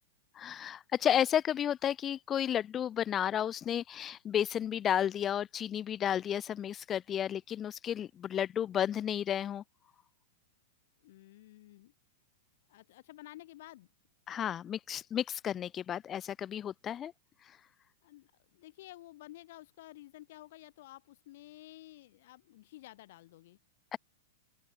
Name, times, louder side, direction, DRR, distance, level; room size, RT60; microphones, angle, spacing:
voice 1, 0.4-9.6 14.3-17.1 23.9-24.0, left 10 dB, 25° left, 0.4 m, -32 dB
voice 2, 11.0-11.9 12.7-13.9 18.0-23.6, left 16 dB, 65° left, 4.5 m, -52 dB
open air
hypercardioid pair, 135°, 0 cm